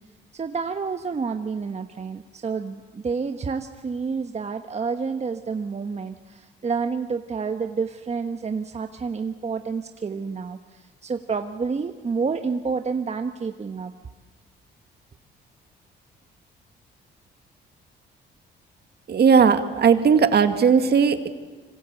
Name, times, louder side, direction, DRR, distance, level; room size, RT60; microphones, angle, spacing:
voice 1, 0.3-13.9, right 5 dB, 35° right, 6 dB, 1.3 m, -29 dB
voice 2, 19.1-21.3, right 6 dB, 55° right, 8 dB, 2.1 m, -17 dB
26.0 x 25.5 x 8.3 m, 1.3 s
cardioid pair, 90°, 20 cm